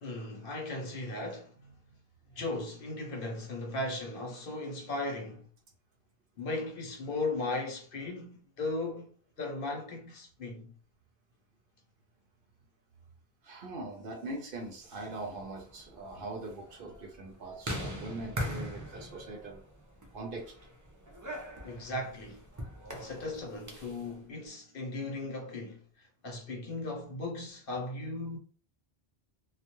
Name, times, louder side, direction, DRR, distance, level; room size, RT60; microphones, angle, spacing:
voice 1, 0.0-1.5 2.3-5.5 6.4-10.7 21.6-22.4 22.9-28.4, left 2 dB, 60° left, 0.9 m, -37 dB
voice 2, 13.4-19.6 20.1-20.6, right 2 dB, 60° right, 0.7 m, -41 dB
sound 1, 15.1-24.1, equal, 25° right, 0.4 m, -42 dB
2.3 x 2.2 x 2.9 m
omnidirectional pair, 1.1 m